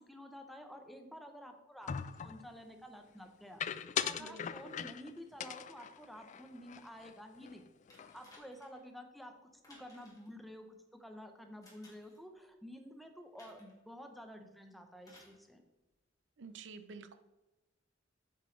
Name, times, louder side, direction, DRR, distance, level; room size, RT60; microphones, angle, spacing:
voice 1, 0.0-1.9 2.2-7.6 8.0-9.3 9.7-10.7 11.0-15.6, equal, ahead, 5 dB, 0.8 m, -51 dB
sound 1, 1.9-2.5 3.6-5.1 5.4-7.1 7.4-7.6 7.9-8.4, left 8 dB, 40° left, 0.3 m, -40 dB
sound 2, 7.9-8.9 9.6-10.3 11.6-12.2 13.4-13.8 15.0-15.4 16.4-16.5, left 2 dB, 20° left, 2.2 m, -61 dB
voice 2, 16.4-17.2, right 4 dB, 70° right, 10 dB, 0.6 m, -49 dB
8.1 x 6.7 x 3.2 m, 1.1 s
head